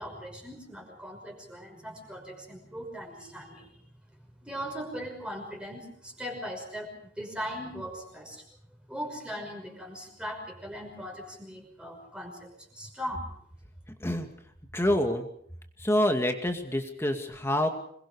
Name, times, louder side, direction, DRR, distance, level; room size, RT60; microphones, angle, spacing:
voice 1, 0.0-3.7 4.4-8.4 8.9-13.3, equal, 5° right, 1 dB, 5.7 m, -39 dB
voice 2, 14.7-15.3 15.8-17.7, left 1 dB, 15° left, 5 dB, 2.2 m, -26 dB
27.0 x 22.0 x 5.0 m, 0.65 s
head